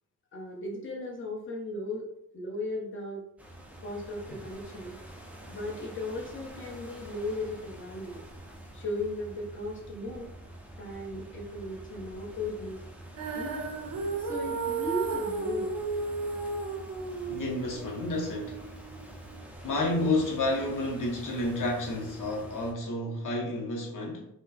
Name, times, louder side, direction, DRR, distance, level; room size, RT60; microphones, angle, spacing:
voice 1, 0.3-2.1 2.3-3.2 3.8-5.0 5.5-8.2 8.7-10.3 10.8-12.8 13.3-13.7 14.2-15.8, left 1 dB, 35° left, 1.0 m, -36 dB
sound 1, 3.4-22.7, right 1 dB, 5° right, 0.5 m, -47 dB
Female singing, 13.2-19.4, right 4 dB, 85° right, 0.8 m, -34 dB
voice 2, 17.2-18.6 19.6-24.3, left 2 dB, 65° left, 0.9 m, -30 dB
5.0 x 2.1 x 4.0 m
wide cardioid pair, 170°, 33 cm